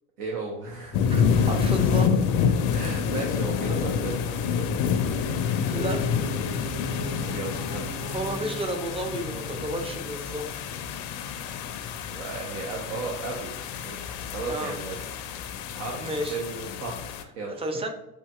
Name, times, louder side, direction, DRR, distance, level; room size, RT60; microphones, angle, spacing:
voice 1, 0.2-1.0 2.7-4.7 7.2-7.8 12.1-13.6 13.8-15.1 15.4-17.6, right 3 dB, 70° right, -1 dB, 0.8 m, -35 dB
sound 1, 0.9-17.2, left 7 dB, 45° left, 0.5 m, -28 dB
voice 2, 1.1-2.2 5.7-6.0 8.0-10.4 14.5-14.7 16.0-16.4 17.6-17.9, right 1 dB, 15° right, 5 dB, 0.4 m, -32 dB
sound 2, 5.6-11.5, right 1 dB, 30° right, 0.9 m, -39 dB
6.4 x 2.8 x 2.3 m, 0.90 s
figure-of-eight pair, 60°, 48 cm